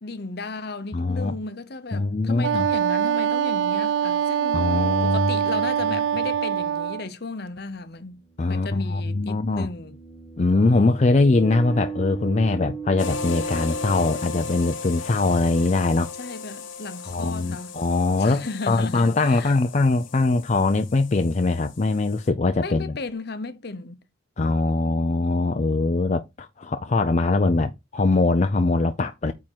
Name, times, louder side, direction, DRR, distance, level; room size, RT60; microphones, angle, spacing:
voice 1, 0.0-4.7 5.0-8.2 8.5-10.0 16.2-17.7 18.2-19.5 22.6-24.0, left 3 dB, 55° left, 0.8 m, -35 dB
voice 2, 0.9-1.3 1.9-2.7 4.5-5.5 5.9-6.0 8.4-9.7 10.4-16.1 17.1-22.9 24.4-29.3, left 3 dB, 35° left, 0.5 m, -22 dB
Wind instrument woodwind instrument, 2.4-7.1, right 9 dB, 75° right, 0.4 m, -24 dB
sound 1, 6.6-6.7 8.2-15.0, right 5 dB, 10° left, 1.8 m, -38 dB
sound 2, 13.0-22.3, left 4 dB, 80° left, 1.1 m, -36 dB
8.9 x 3.7 x 4.5 m
head